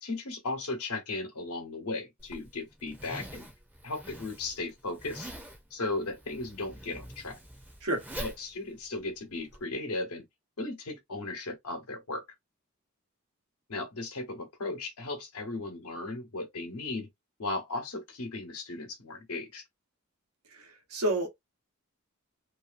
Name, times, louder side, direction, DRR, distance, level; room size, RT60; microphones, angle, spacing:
voice 1, 0.0-3.5 3.8-5.3 5.7-7.4 8.2-10.2 10.6-12.2 13.7-17.1 17.4-19.6, left 2 dB, 85° left, 0.9 m, -36 dB
Zipper (clothing), 2.2-9.6, equal, 5° right, 0.5 m, -45 dB
voice 2, 20.5-21.3, right 1 dB, 85° right, 0.9 m, -30 dB
2.7 x 2.4 x 2.4 m
head